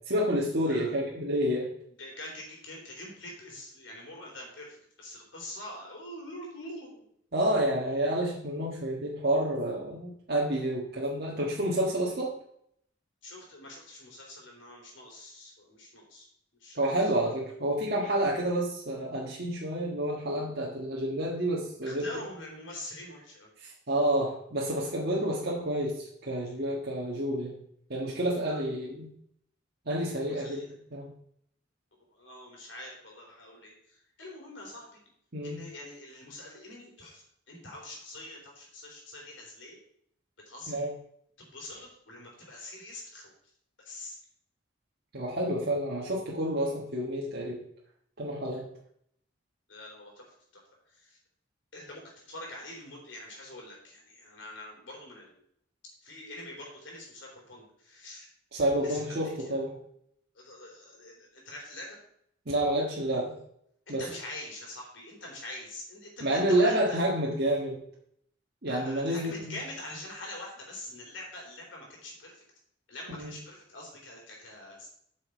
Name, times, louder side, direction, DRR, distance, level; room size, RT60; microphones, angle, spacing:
voice 1, 0.1-1.7 7.3-12.3 16.8-22.1 23.6-27.5 27.9-29.1 29.9-30.6 30.9-31.1 35.3-35.6 40.7-40.9 45.1-47.6 48.2-48.7 58.5-59.8 62.4-63.3 63.9-64.0 66.2-67.8 68.6-69.6 73.2-73.3, right 1 dB, 55° right, -4 dB, 1.6 m, -29 dB
voice 2, 0.6-1.0 2.0-7.0 13.2-16.3 16.6-16.9 21.8-23.5 28.5-28.6 30.2-30.7 32.1-34.9 35.4-39.8 40.5-40.8 41.4-43.3 43.9-44.1 49.7-50.3 51.0-51.2 51.7-52.0 52.3-55.4 56.0-58.3 58.8-59.3 60.4-62.0 63.9-67.1 68.7-72.4 72.9-74.9, left 1 dB, 75° left, -1 dB, 3.6 m, -44 dB
7.8 x 6.5 x 5.1 m, 0.69 s
head